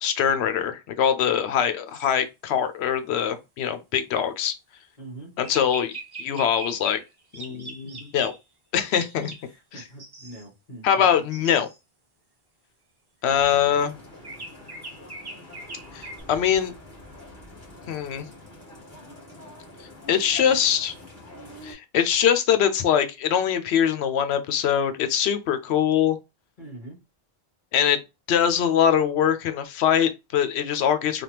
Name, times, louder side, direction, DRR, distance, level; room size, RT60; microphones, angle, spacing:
voice 1, 0.0-4.5 5.4-5.9 6.2-7.0 7.3-8.3 8.7-9.3 10.8-11.7 13.2-13.9 15.9-16.7 17.9-18.3 20.1-20.9 21.6-26.2 27.7-28.0 28.3-31.2, left 8 dB, 90° left, 0.9 m, -23 dB
sound 1, 1.9-2.1 5.4-7.1 7.3-8.4 8.9-9.5 9.8-10.5 11.0-11.8 14.2-16.2, right 2 dB, 30° right, 0.6 m, -41 dB
voice 2, 5.0-5.3 7.8-8.0 9.2-11.2 26.6-27.0, right 2 dB, 50° left, 1.3 m, -43 dB
sound 2, 13.2-21.7, left 1 dB, 15° left, 1.8 m, -45 dB
3.4 x 2.3 x 2.8 m
omnidirectional pair, 1.1 m